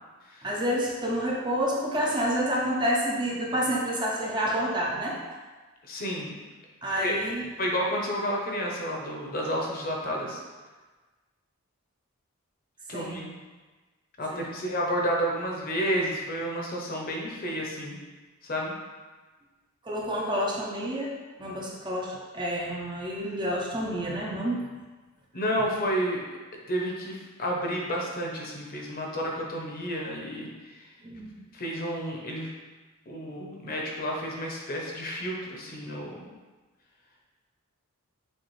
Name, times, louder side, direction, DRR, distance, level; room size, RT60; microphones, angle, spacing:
voice 1, 0.4-5.2 6.8-7.4 12.9-13.2 14.3-14.5 19.8-21.1 21.4-24.6 31.0-31.3, equal, 20° right, -3 dB, 0.5 m, -29 dB
voice 2, 5.8-6.3 7.0-7.2 7.6-10.4 12.9-13.3 14.2-18.0 18.4-18.7 25.3-26.3 26.7-30.9 31.5-32.5 33.1-36.2, equal, 40° left, -1 dB, 0.7 m, -31 dB
6.4 x 2.4 x 3.1 m, 1.3 s
head